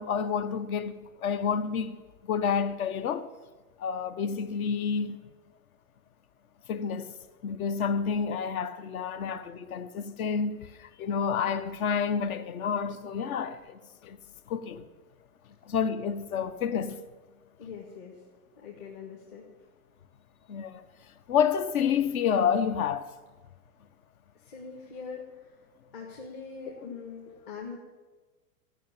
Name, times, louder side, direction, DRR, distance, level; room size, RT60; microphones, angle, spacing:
voice 1, 0.0-3.3 3.8-5.2 6.7-7.1 7.4-14.2 14.5-14.9 15.6-17.0 20.5-20.8 21.3-23.1, left 7 dB, 60° left, 1.0 m, -29 dB
voice 2, 17.6-18.3 18.6-19.5 24.3-25.6 25.9-27.8, left 5 dB, 40° left, 1.8 m, -43 dB
14.5 x 6.1 x 8.9 m
supercardioid pair, 170°, 48 cm